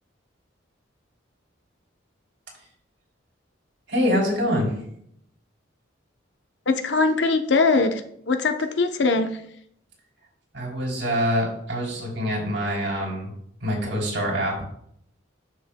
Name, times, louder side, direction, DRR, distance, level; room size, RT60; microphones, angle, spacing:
voice 1, 3.9-4.7 10.5-13.3 13.6-14.7, equal, 75° right, -2 dB, 3.2 m, -25 dB
voice 2, 6.7-8.0 8.3-9.3, left 3 dB, 65° left, 7 dB, 0.7 m, -21 dB
12.5 x 6.3 x 2.2 m, 0.70 s
head